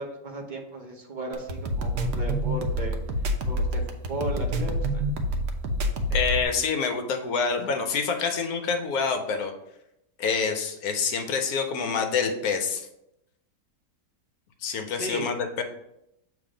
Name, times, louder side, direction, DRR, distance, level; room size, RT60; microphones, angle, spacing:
voice 1, 0.0-3.0 3.4-5.0 14.9-15.3, right 1 dB, 35° right, 1 dB, 0.9 m, -35 dB
sound 1, 1.3-6.4, equal, 80° right, 1.3 m, -27 dB
voice 2, 6.1-9.5 10.2-12.9 14.6-15.6, left 5 dB, 65° left, 5 dB, 1.1 m, -27 dB
7.0 x 3.3 x 4.9 m, 0.84 s
omnidirectional pair, 1.8 m